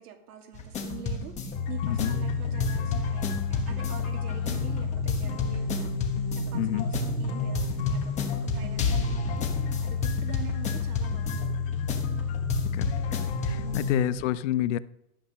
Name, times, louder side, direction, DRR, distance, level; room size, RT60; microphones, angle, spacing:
voice 1, 0.0-11.7 13.6-13.9, right 10 dB, 85° right, 2.6 m, -45 dB
sound 1, 0.5-14.2, left 3 dB, 15° left, 1.2 m, -32 dB
sound 2, 1.5-14.1, left 6 dB, 35° left, 2.4 m, -31 dB
voice 2, 1.8-2.2 6.5-6.9 12.7-13.0 13.4-14.8, left 13 dB, 55° left, 0.6 m, -28 dB
13.0 x 7.9 x 6.4 m
supercardioid pair, 170°, 44 cm